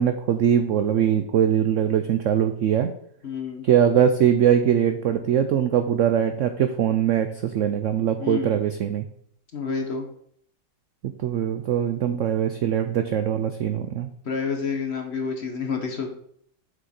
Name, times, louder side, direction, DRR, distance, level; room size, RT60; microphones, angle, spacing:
voice 1, 0.0-2.9 3.6-9.0 11.0-14.1, right 9 dB, 80° right, 8 dB, 0.6 m, -22 dB
voice 2, 3.2-3.7 8.2-8.6 9.5-10.1 14.2-16.1, left 5 dB, 45° left, 3 dB, 1.0 m, -29 dB
7.1 x 6.4 x 4.3 m, 0.65 s
omnidirectional pair, 1.9 m